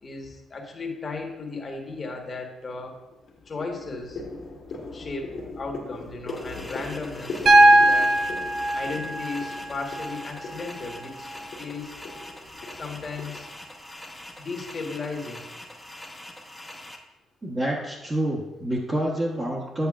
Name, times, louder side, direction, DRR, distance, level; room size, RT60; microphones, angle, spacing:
voice 1, 0.0-2.9 3.5-4.2 4.9-8.1 8.7-11.3 11.6-11.9 12.8-13.5 14.4-15.4, left 3 dB, 35° left, 1 dB, 1.4 m, -35 dB
sound 1, 1.7-2.2 2.6-13.4, left 3 dB, 65° left, 1.8 m, -40 dB
sound 2, 6.3-17.0, left 1 dB, 5° left, 1.0 m, -43 dB
Piano, 7.5-11.5 13.0-13.1, right 1 dB, 45° right, 0.7 m, -21 dB
voice 2, 17.4-19.9, right 1 dB, 25° right, -5 dB, 1.2 m, -27 dB
8.6 x 8.2 x 2.4 m, 1.0 s
cardioid pair, 90°, 0 cm